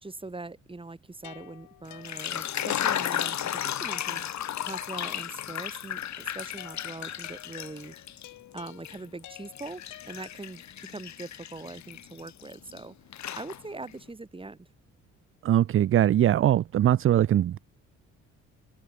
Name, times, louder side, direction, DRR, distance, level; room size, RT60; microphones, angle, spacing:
voice 1, 0.0-8.0 8.5-13.0 13.4-14.7, right 3 dB, 15° right, 3.8 m, -42 dB
sound 1, 1.2-3.0 3.9-5.3 6.6-10.7, left 15 dB, 90° left, 3.6 m, -50 dB
sound 2, 1.9-8.3 8.7-12.8 13.1-13.9, left 10 dB, 65° left, 4.0 m, -34 dB
voice 2, 15.4-17.6, right 11 dB, 45° right, 0.5 m, -21 dB
open air
cardioid pair, 90°, 30 cm